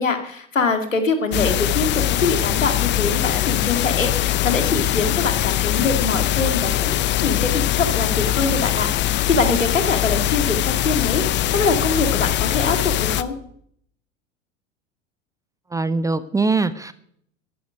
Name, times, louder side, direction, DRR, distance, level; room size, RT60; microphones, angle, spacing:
voice 1, 0.0-1.9 2.2-13.3, left 3 dB, 85° left, 6 dB, 2.3 m, -23 dB
sound 1, 1.3-13.2, left 13 dB, 30° left, 0.7 m, -21 dB
voice 2, 15.7-16.9, right 3 dB, 10° right, 15 dB, 0.6 m, -22 dB
14.5 x 13.0 x 5.1 m, 0.67 s
figure-of-eight pair, 85°, 38 cm